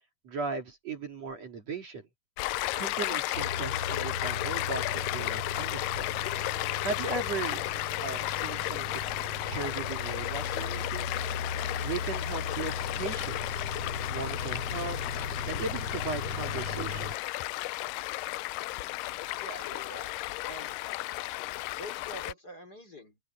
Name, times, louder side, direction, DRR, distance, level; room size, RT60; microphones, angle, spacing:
voice 1, 0.2-2.1 2.8-6.1 6.8-9.0 9.5-11.1 11.8-13.6 14.1-15.0 15.5-17.1, right 4 dB, 50° right, 3.6 m, -37 dB
Stream, 2.4-22.3, left 19 dB, 80° left, 2.0 m, -34 dB
sound 1, 3.3-17.1, left 4 dB, 45° left, 3.9 m, -37 dB
voice 2, 19.4-20.1 20.4-20.8 21.8-23.2, equal, 25° left, 4.0 m, -45 dB
open air
omnidirectional pair, 4.1 m